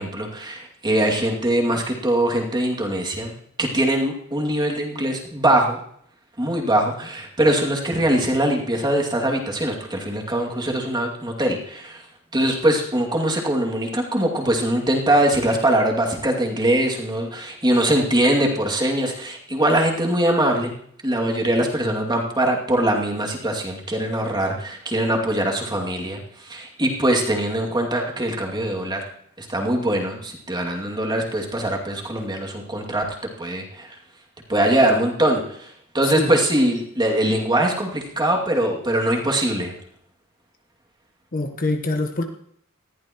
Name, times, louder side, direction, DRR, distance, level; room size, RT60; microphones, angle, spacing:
voice 1, 0.0-3.3 3.6-5.8 6.4-12.0 12.3-20.7 21.0-29.0 29.4-33.1 33.4-33.9 34.5-39.7, right 1 dB, 20° right, 0 dB, 2.4 m, -22 dB
voice 2, 41.3-42.2, left 2 dB, 40° left, 5 dB, 1.1 m, -24 dB
20.0 x 14.0 x 3.0 m, 0.66 s
head